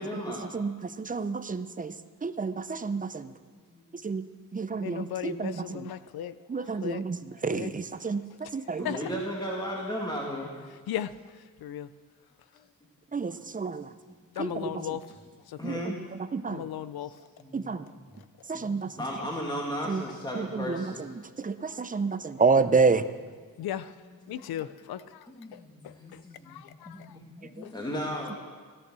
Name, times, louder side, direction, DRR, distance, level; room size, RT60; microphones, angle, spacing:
voice 1, 0.0-0.4 3.7-3.8 8.8-10.5 14.9-15.0 15.6-16.0 17.0-18.2 18.5-21.0 24.2-24.6 25.3-28.4, equal, 10° left, -2 dB, 2.2 m, -36 dB
voice 2, 0.5-1.9 2.2-3.3 4.0-4.2 4.5-5.9 6.5-8.9 13.1-13.9 14.4-15.0 15.6-16.7 17.5-17.9 18.5-18.9 19.9-20.0 20.4-23.1, right 4 dB, 20° right, 11 dB, 0.7 m, -29 dB
voice 3, 4.8-7.0 7.5-7.7 8.8-9.1 10.9-11.1 11.6-11.9 14.4-15.1 15.5-15.8 16.5-17.1 21.7-21.8 23.6-23.9 24.3-27.2 27.6-27.7, left 11 dB, 85° left, 15 dB, 0.7 m, -37 dB
17.0 x 13.5 x 6.3 m, 1.5 s
cardioid pair, 120°, 36 cm